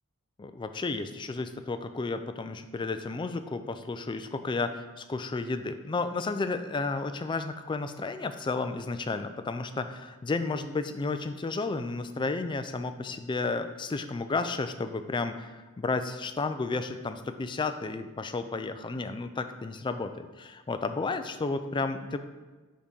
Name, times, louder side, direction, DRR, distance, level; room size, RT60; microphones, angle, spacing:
voice 1, 0.4-15.5 15.8-22.2, left 3 dB, 20° left, 9 dB, 0.3 m, -32 dB
5.2 x 4.9 x 5.3 m, 1.3 s
head